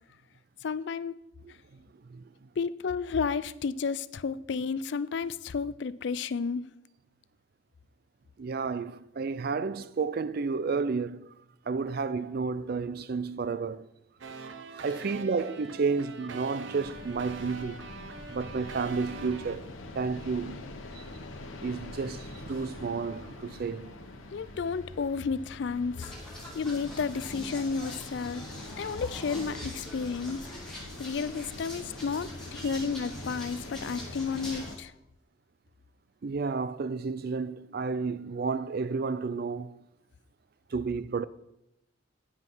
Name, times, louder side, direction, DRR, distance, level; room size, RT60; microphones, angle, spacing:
voice 1, 0.6-1.2 2.6-6.7 24.3-26.1 26.5-28.4 28.8-30.4 31.0-34.9, left 5 dB, 60° left, 0.4 m, -32 dB
voice 2, 1.4-1.8 2.1-2.5 8.4-11.3 11.7-13.9 14.4-17.9 18.3-19.7 19.9-20.6 20.9-21.0 21.6-23.9 32.6-32.8 36.2-39.7 40.7-41.2, right 4 dB, 50° right, 0.4 m, -32 dB
sound 1, 14.2-19.6, right 4 dB, 70° right, 0.7 m, -43 dB
sound 2, 16.8-34.8, left 2 dB, 85° left, 1.2 m, -44 dB
sound 3, 26.0-34.8, left 1 dB, 5° left, 2.0 m, -44 dB
9.5 x 5.6 x 6.1 m
head